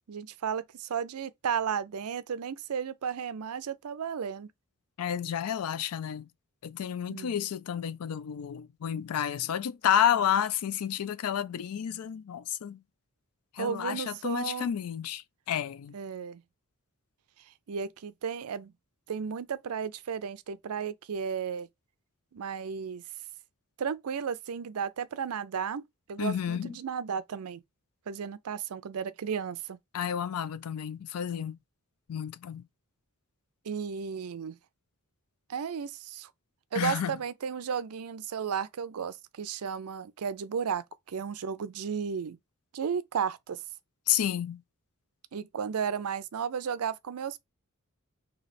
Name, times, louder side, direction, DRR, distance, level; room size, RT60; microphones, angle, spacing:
voice 1, 0.1-4.5 7.1-7.4 13.6-14.7 15.9-16.4 17.7-18.7 19.1-21.7 22.3-23.0 23.8-25.8 26.1-27.6 28.1-29.8 33.7-34.6 35.5-36.3 36.7-42.4 42.7-43.6 45.3-47.4, right 7 dB, 80° right, 0.5 m, -34 dB
voice 2, 5.0-6.3 6.6-12.8 13.6-15.2 15.5-15.9 26.2-26.7 29.9-31.6 32.1-32.6 36.7-37.2 44.1-44.6, left 9 dB, 75° left, 0.4 m, -30 dB
3.1 x 2.8 x 4.1 m
head